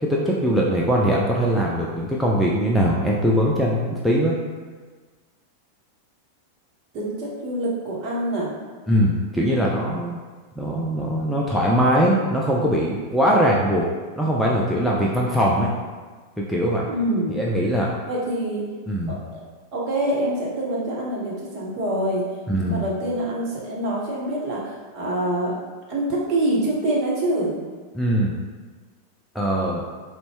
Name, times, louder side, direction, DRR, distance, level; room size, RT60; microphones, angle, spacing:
voice 1, 0.0-4.4 8.9-10.2 10.6-13.9 14.2-15.7 16.4-16.9 17.3-17.9 18.9-19.2 22.5-22.8 27.9-28.3 29.3-29.8, equal, ahead, -4 dB, 0.4 m, -21 dB
voice 2, 6.9-8.5 16.9-17.4 18.1-18.7 19.1-19.4 19.7-22.2 22.6-25.6 25.9-27.6, right 1 dB, 40° right, -4 dB, 0.9 m, -25 dB
4.1 x 2.1 x 3.0 m, 1.4 s
figure-of-eight pair, 90°, 0 cm